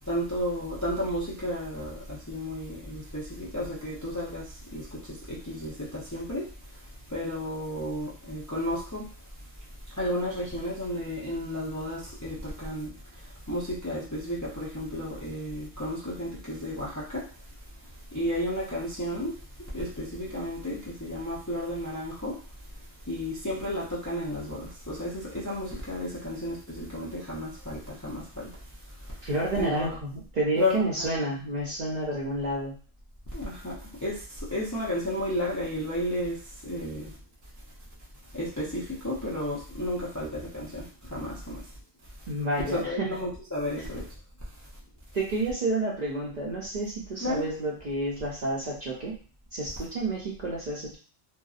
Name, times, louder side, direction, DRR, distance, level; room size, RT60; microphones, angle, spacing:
voice 1, 0.0-9.1 9.9-17.3 18.1-19.4 19.7-22.4 23.1-28.5 29.0-29.2 29.5-30.0 30.6-31.1 33.3-37.2 38.3-41.7 42.6-44.1 47.2-47.5, left 1 dB, 25° left, -7 dB, 0.4 m, -33 dB
voice 2, 29.2-32.8 42.3-43.2 43.8-43.9 45.1-49.1 49.5-51.0, right 2 dB, 55° right, -3 dB, 0.5 m, -30 dB
2.6 x 2.0 x 2.3 m, 0.40 s
omnidirectional pair, 1.1 m